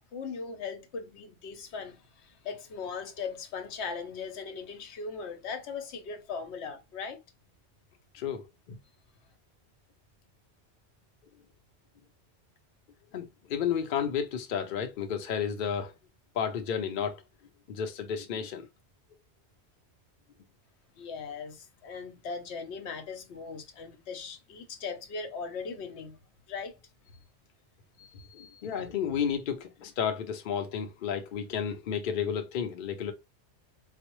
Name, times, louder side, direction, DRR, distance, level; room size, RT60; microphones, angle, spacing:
voice 1, 0.1-7.2 21.0-26.2 26.5-26.8 28.0-28.7, left 5 dB, 75° left, 1.0 m, -39 dB
voice 2, 8.1-8.8 13.1-15.9 16.3-17.2 17.7-18.7 28.3-33.1, left 7 dB, 60° left, 0.7 m, -32 dB
4.1 x 2.0 x 3.0 m
omnidirectional pair, 1.1 m